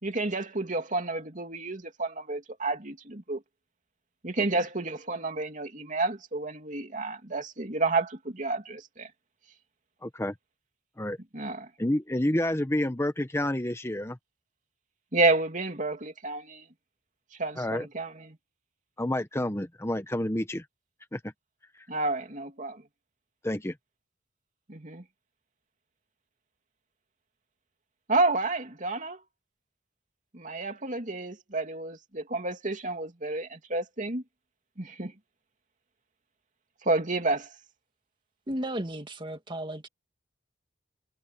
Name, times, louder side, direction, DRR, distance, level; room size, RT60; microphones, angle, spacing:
voice 1, 0.0-3.4 4.2-9.1 11.3-11.7 15.1-16.6 17.4-18.4 21.9-22.8 24.7-25.0 28.1-29.2 30.3-34.2 34.8-35.1 36.8-37.5, right 3 dB, 45° right, 3.0 m, -30 dB
voice 2, 10.0-10.3 11.0-11.2 11.8-14.2 17.6-17.9 19.0-20.6 21.1-21.2 23.4-23.7, left 1 dB, 15° left, 1.2 m, -29 dB
voice 3, 38.5-39.9, right 1 dB, 30° right, 2.0 m, -34 dB
head